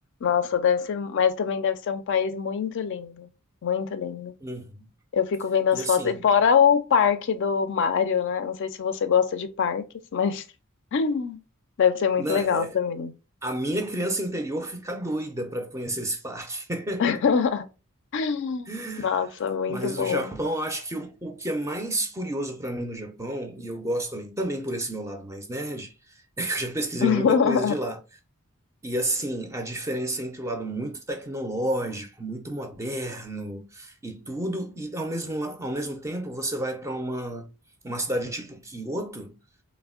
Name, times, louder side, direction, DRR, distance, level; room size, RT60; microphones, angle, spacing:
voice 1, 0.2-3.3 3.6-4.3 5.1-9.8 10.1-10.4 10.9-11.4 11.8-13.1 17.0-17.6 18.1-18.7 19.0-20.3 27.0-27.7, left 7 dB, 55° left, 0.4 m, -24 dB
voice 2, 4.4-4.9 5.7-6.3 12.2-12.8 13.4-17.2 18.7-19.3 19.7-25.9 26.4-28.0 28.8-37.5 37.8-39.4, right 1 dB, 15° right, 0.4 m, -31 dB
3.4 x 2.1 x 2.3 m
head